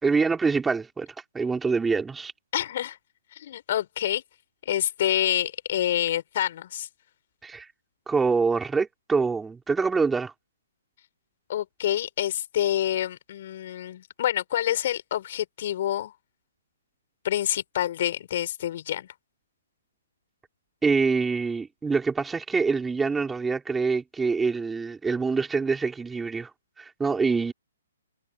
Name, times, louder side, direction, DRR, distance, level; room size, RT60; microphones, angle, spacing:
voice 1, 0.0-1.1 1.3-2.3 7.4-7.7 8.1-10.3 20.8-26.5 26.8-27.5, right 4 dB, 10° right, 4.0 m, -25 dB
voice 2, 2.5-3.0 3.3-4.2 4.7-6.9 11.5-16.1 17.2-19.1, left 11 dB, 50° left, 6.4 m, -27 dB
hypercardioid pair, 140°, 0 cm